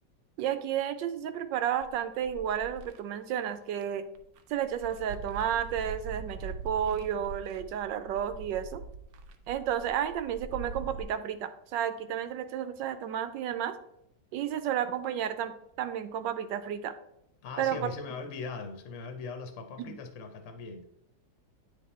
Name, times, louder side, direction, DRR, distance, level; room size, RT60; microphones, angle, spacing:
voice 1, 0.4-4.0 4.5-8.8 9.5-13.7 14.3-16.9 17.6-17.9 19.8-20.0, right 9 dB, 90° right, 11 dB, 1.3 m, -32 dB
sound 1, 1.8-3.0 3.7-3.8 4.2-11.0, right 4 dB, 70° right, 0.9 m, -43 dB
voice 2, 17.4-20.9, left 4 dB, 55° left, 6 dB, 1.0 m, -40 dB
8.6 x 3.6 x 4.2 m, 0.78 s
omnidirectional pair, 1.9 m